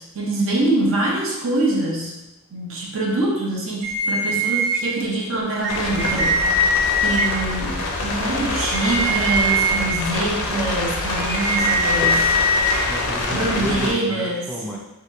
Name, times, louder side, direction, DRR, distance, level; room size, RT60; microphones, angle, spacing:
voice 1, 0.0-2.1 2.5-6.5 7.0-12.3 13.3-14.5, right 2 dB, 65° right, -2 dB, 0.7 m, -24 dB
sound 1, 3.8-4.8 5.6-7.2 8.5-9.8 11.2-12.8, equal, 40° right, 1.1 m, -21 dB
sound 2, 5.7-13.9, left 2 dB, 75° left, 0.5 m, -26 dB
voice 2, 12.9-14.8, left 1 dB, ahead, -4 dB, 0.3 m, -31 dB
2.8 x 2.7 x 3.4 m, 0.99 s
head